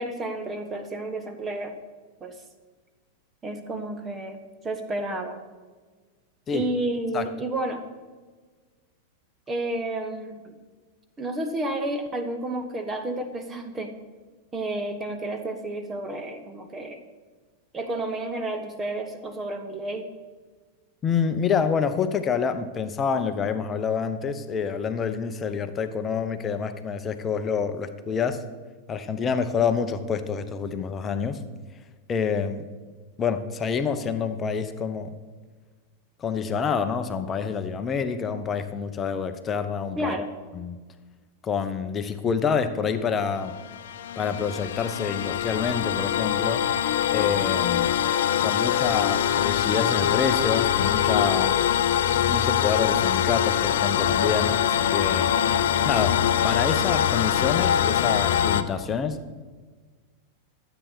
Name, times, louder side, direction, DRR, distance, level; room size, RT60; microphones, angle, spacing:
voice 1, 0.0-1.8 2.2-2.3 3.4-5.4 6.5-7.8 9.5-10.5 11.2-13.9 14.5-17.0 17.7-20.1 40.0-40.3, right 1 dB, 20° right, 6 dB, 1.3 m, -31 dB
voice 2, 21.0-28.4 28.9-31.4 32.1-32.7 33.2-35.1 36.2-40.1 40.5-40.8 41.4-43.5 44.2-46.6 47.1-48.0 48.4-51.6 52.3-55.3 55.8-59.2, left 6 dB, 25° left, 10 dB, 0.8 m, -27 dB
sound 1, 43.4-58.6, left 9 dB, 60° left, 0.6 m, -23 dB
13.5 x 8.2 x 6.2 m, 1.4 s
figure-of-eight pair, 90°, 0 cm